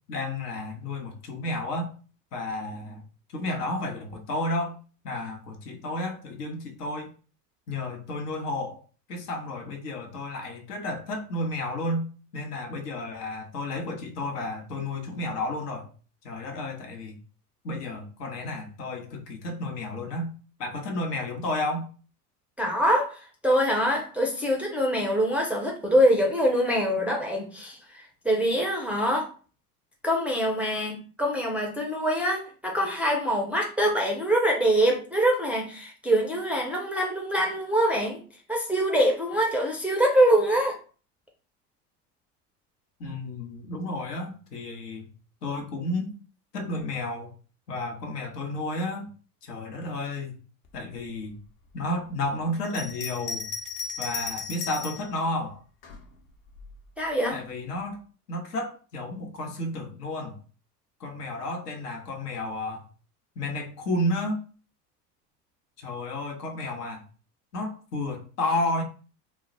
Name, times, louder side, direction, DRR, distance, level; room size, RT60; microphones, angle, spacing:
voice 1, 0.1-1.9 2.3-3.0 3.3-4.8 5.0-7.1 7.7-8.8 9.1-15.9 16.2-17.2 17.6-20.3 20.6-21.9 43.0-45.1 45.4-46.1 46.5-47.3 47.7-49.1 49.4-50.4 50.7-51.4 51.7-53.5 54.0-55.6 57.3-58.0 58.3-60.4 61.0-62.8 63.4-64.4 65.8-67.0 67.5-68.8, left 1 dB, 80° left, 3 dB, 0.8 m, -32 dB
voice 2, 22.6-27.8 28.2-29.3 30.0-38.2 38.5-40.8 57.0-57.4, equal, 5° right, -1 dB, 0.4 m, -24 dB
Bell, 52.6-55.1 55.8-56.7, left 5 dB, 50° left, 0.8 m, -35 dB
2.3 x 2.0 x 3.8 m, 0.38 s
hypercardioid pair, 75°, 47 cm